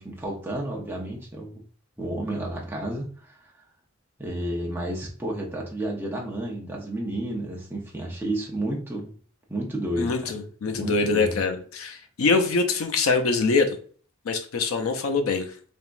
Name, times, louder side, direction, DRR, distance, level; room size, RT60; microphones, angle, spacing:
voice 1, 0.0-1.5 2.0-3.5 4.2-9.1 9.5-10.4 10.7-11.4, right 1 dB, 10° right, -1 dB, 0.7 m, -31 dB
voice 2, 10.0-13.8 14.3-15.5, left 4 dB, 85° left, 6 dB, 0.5 m, -24 dB
3.5 x 2.8 x 2.5 m, 0.44 s
head